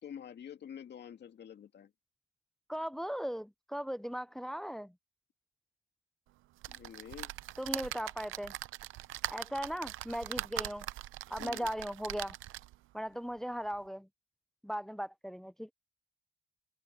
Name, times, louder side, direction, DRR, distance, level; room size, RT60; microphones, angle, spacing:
voice 1, 0.0-1.9 6.7-7.3 11.4-11.7, left 8 dB, 60° left, 2.3 m, -47 dB
voice 2, 2.7-4.9 7.6-8.5 9.3-10.9 11.3-12.4 12.9-14.1 14.6-15.7, equal, ahead, 0.4 m, -38 dB
sound 1, 6.6-12.8 13.4-13.5 13.7-13.8, right 15 dB, 80° right, 0.6 m, -41 dB
open air
cardioid pair, 90°, 20 cm